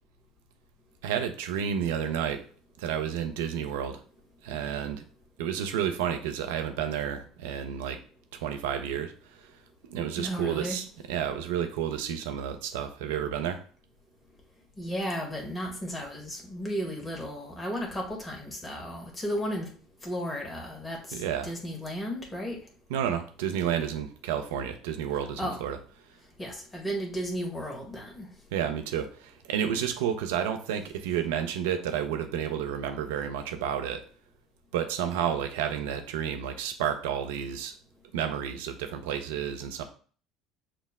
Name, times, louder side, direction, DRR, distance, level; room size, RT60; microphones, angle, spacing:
voice 1, 1.0-2.4 2.8-4.0 4.4-5.0 5.4-8.0 8.3-9.5 9.8-13.6 21.1-21.5 22.9-25.8 28.5-34.0 34.7-37.7 38.1-39.8, right 8 dB, 75° right, 6 dB, 0.5 m, -31 dB
voice 2, 10.2-10.8 14.8-19.7 20.0-22.6 25.4-25.6 26.4-28.3, equal, 15° left, 0 dB, 1.4 m, -34 dB
5.9 x 2.0 x 3.5 m, 0.43 s
hypercardioid pair, 65°, 0 cm